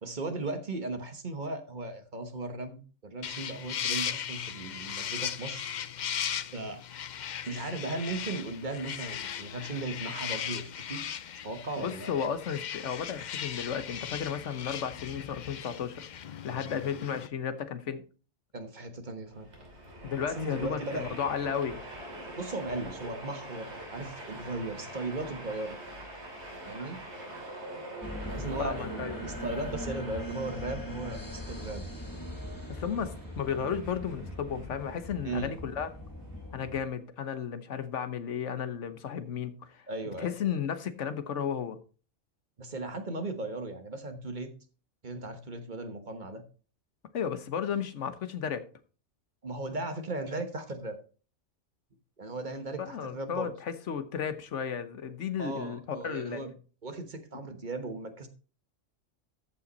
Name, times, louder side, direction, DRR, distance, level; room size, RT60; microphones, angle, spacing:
voice 1, 0.0-5.7 6.5-6.8 7.5-11.0 11.4-12.2 18.5-19.5 20.4-21.2 22.3-25.8 26.6-27.0 28.2-31.9 35.2-35.5 39.9-40.3 42.6-44.5 45.0-46.4 49.4-51.0 52.2-53.5 55.4-56.5 56.8-58.3, right 2 dB, 40° right, 1.3 m, -37 dB
sound 1, 3.2-17.3, left 9 dB, 55° left, 0.5 m, -37 dB
voice 2, 11.8-16.0 16.3-18.0 20.0-21.8 28.6-29.2 32.7-35.9 36.5-39.8 40.2-41.8 47.1-48.6 52.8-56.4, left 7 dB, 75° left, 1.3 m, -34 dB
Train, 19.3-36.9, right 1 dB, 60° right, 3.1 m, -45 dB
sound 2, 28.0-36.8, left 1 dB, 15° left, 1.3 m, -41 dB
14.0 x 5.6 x 4.0 m
omnidirectional pair, 1.3 m